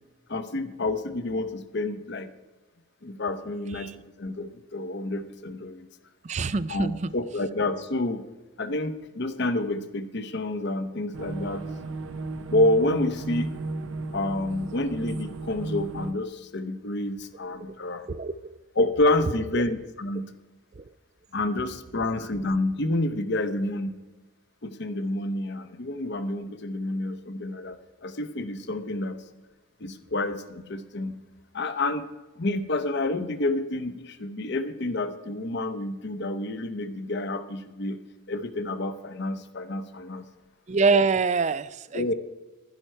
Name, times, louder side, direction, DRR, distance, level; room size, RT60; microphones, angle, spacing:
voice 1, 0.3-2.3 3.0-5.9 6.7-8.2 8.6-11.6 12.5-13.5 14.1-18.1 18.8-20.3 21.3-24.0 24.6-27.8 28.0-29.2 29.8-31.2 31.5-32.1 32.4-38.0 38.3-40.2 41.9-42.1, left 2 dB, 55° left, 10 dB, 0.8 m, -28 dB
voice 2, 6.2-7.1 18.1-18.3 19.5-19.6 20.8-20.9 40.7-42.1, right 4 dB, 35° right, 16 dB, 0.4 m, -25 dB
sound 1, 11.1-16.1, right 2 dB, 70° right, 0.7 m, -34 dB
11.5 x 11.0 x 4.5 m, 1.2 s
head